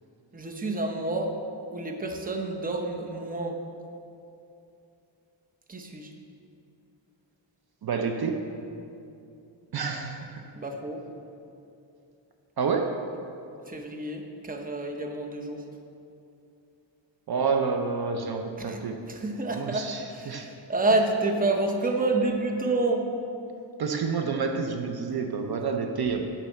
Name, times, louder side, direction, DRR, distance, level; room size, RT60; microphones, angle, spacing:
voice 1, 0.3-1.4 1.7-3.6 5.7-6.1 10.6-11.0 13.7-15.6 18.6-23.1, right 2 dB, 20° right, 3 dB, 0.7 m, -29 dB
voice 2, 7.8-8.5 9.7-10.4 12.6-13.0 17.3-19.0 19.5-20.5 23.8-26.3, right 5 dB, 55° right, 5 dB, 0.6 m, -29 dB
11.0 x 4.1 x 7.3 m, 2.7 s
wide cardioid pair, 135°, 46 cm